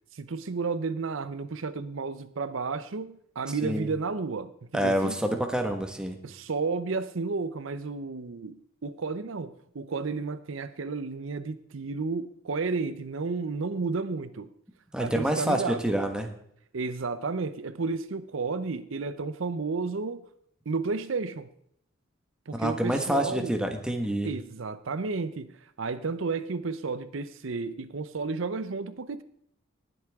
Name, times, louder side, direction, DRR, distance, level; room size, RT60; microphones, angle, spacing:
voice 1, 0.1-5.1 6.2-14.5 15.0-15.9 16.7-20.2 20.7-21.5 22.5-23.5 24.2-25.5 25.8-29.2, right 4 dB, 70° right, 13 dB, 0.6 m, -32 dB
voice 2, 4.7-6.2 14.9-16.3 22.5-24.3, equal, 5° right, 4 dB, 1.4 m, -27 dB
19.5 x 8.0 x 3.6 m, 0.70 s
head